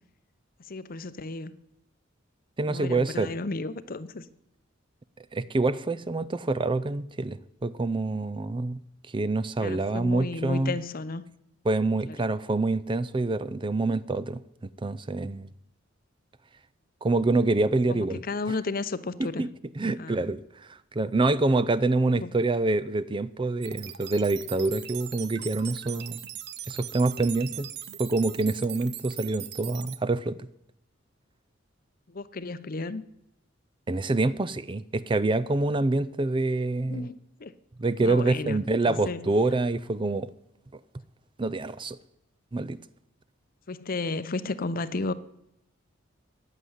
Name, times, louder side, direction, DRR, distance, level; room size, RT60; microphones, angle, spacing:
voice 1, 0.7-1.5 2.7-4.3 9.6-11.3 12.1-12.2 17.9-19.5 20.0-20.3 22.2-22.4 32.1-33.0 36.9-37.5 38.0-38.6 38.9-39.3 43.7-45.1, left 3 dB, 45° left, 0.7 m, -33 dB
voice 2, 2.6-3.3 5.3-8.8 9.1-10.8 11.7-14.4 14.8-15.5 17.0-18.2 19.2-19.5 19.8-20.4 20.7-26.2 26.7-27.7 28.0-30.5 33.9-37.1 37.8-40.3 41.4-42.0 42.5-42.8, right 2 dB, 25° right, 0.5 m, -26 dB
sound 1, 23.6-30.0, right 11 dB, 60° right, 0.9 m, -40 dB
14.5 x 10.0 x 8.0 m
head